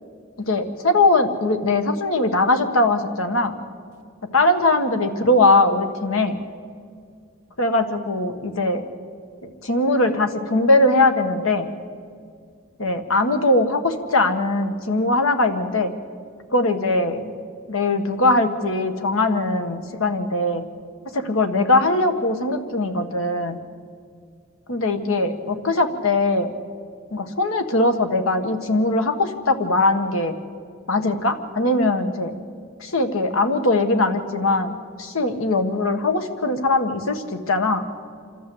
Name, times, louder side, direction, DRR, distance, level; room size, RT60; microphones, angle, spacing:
voice 1, 0.5-3.6 4.3-6.4 7.6-8.8 9.6-11.7 12.8-15.9 16.5-17.3 17.7-20.6 21.1-23.6 24.7-26.5 27.1-30.3 30.9-32.3 32.8-37.8, left 2 dB, 80° left, 6 dB, 1.6 m, -20 dB
27.0 x 13.0 x 8.0 m, 2.2 s
head